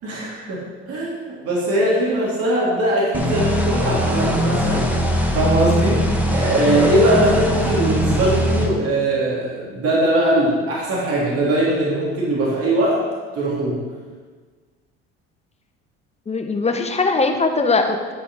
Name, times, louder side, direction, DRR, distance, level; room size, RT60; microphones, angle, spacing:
voice 1, 0.0-4.9 5.3-6.0 6.3-13.0 13.3-13.8, right 1 dB, 50° right, -5 dB, 3.5 m, -20 dB
sound 1, 3.1-8.7, equal, 5° right, 1.9 m, -21 dB
voice 2, 16.3-18.1, left 3 dB, 20° left, 5 dB, 1.2 m, -21 dB
11.0 x 5.6 x 5.7 m, 1.4 s
supercardioid pair, 85°, 29 cm